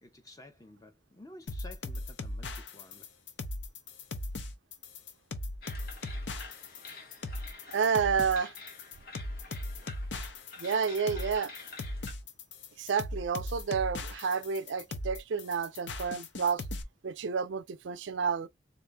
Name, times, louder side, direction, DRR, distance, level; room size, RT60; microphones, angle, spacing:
voice 1, 0.0-3.1, left 2 dB, 20° left, 0.7 m, -52 dB
sound 1, 1.5-16.8, left 2 dB, 80° left, 0.7 m, -38 dB
sound 2, 5.6-12.1, left 3 dB, 55° left, 1.1 m, -49 dB
voice 2, 7.7-8.5 10.6-11.5 12.8-16.6 17.0-18.5, right 6 dB, 90° right, 0.4 m, -30 dB
4.0 x 2.6 x 3.4 m
head